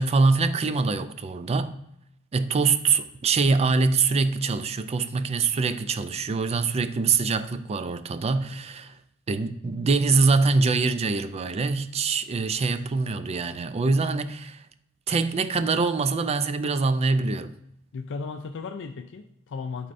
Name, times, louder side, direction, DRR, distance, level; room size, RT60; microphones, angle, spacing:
voice 1, 0.0-1.8 2.3-9.0 9.3-14.7 15.1-17.6, right 4 dB, 30° right, 0.3 m, -24 dB
voice 2, 17.9-19.9, left 4 dB, 60° left, 0.4 m, -35 dB
11.0 x 4.3 x 2.6 m
head